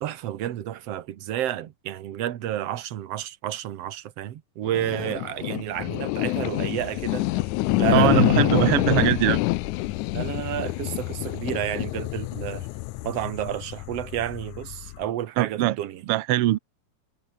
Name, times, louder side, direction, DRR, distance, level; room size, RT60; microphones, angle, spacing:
voice 1, 0.0-7.3 7.8-8.8 10.1-12.7 13.0-16.0, right 12 dB, 60° right, 2.0 m, -31 dB
sound 1, 4.6-15.1, left 19 dB, 80° left, 2.0 m, -26 dB
voice 2, 7.9-9.4 15.4-15.8 16.1-16.6, right 15 dB, 80° right, 1.3 m, -21 dB
omnidirectional pair, 3.6 m